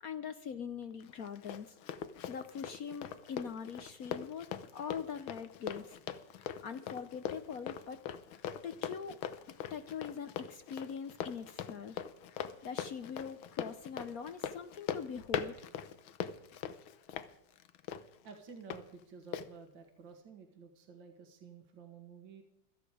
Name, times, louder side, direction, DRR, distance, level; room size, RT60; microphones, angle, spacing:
voice 1, 0.0-1.7 2.3-4.5 4.7-6.0 6.4-8.0 8.3-9.2 9.7-12.0 12.6-15.7, left 7 dB, 60° left, 10 dB, 1.0 m, -42 dB
Run, 1.0-18.8 19.3-19.5, left 9 dB, 80° left, 1.7 m, -42 dB
voice 2, 18.2-22.4, right 5 dB, 65° right, 4 dB, 2.5 m, -52 dB
16.5 x 13.5 x 4.9 m, 0.77 s
omnidirectional pair, 2.3 m